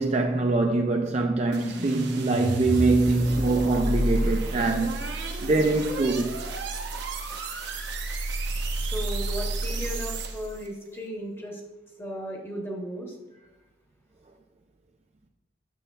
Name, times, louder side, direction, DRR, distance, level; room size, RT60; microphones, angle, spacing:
voice 1, 0.0-4.9 5.4-6.4, right 3 dB, 30° right, 0.3 m, -24 dB
sound 1, 1.5-10.6, right 2 dB, 60° right, 0.8 m, -30 dB
voice 2, 8.8-11.6 12.0-13.2, equal, 10° left, 0.9 m, -35 dB
8.9 x 6.8 x 2.3 m
head